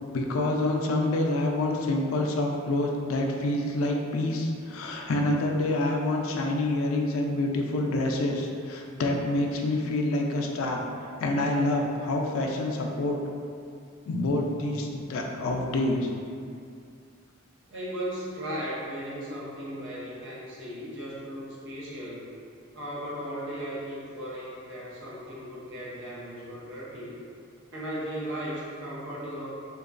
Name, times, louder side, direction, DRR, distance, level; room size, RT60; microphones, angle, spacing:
voice 1, 0.1-10.8 11.2-13.2 14.1-16.1, left 2 dB, 80° left, 1 dB, 0.3 m, -27 dB
voice 2, 17.7-22.3 22.7-27.2 27.7-29.5, equal, 60° right, -6 dB, 0.7 m, -36 dB
2.8 x 2.2 x 2.4 m, 2.3 s
head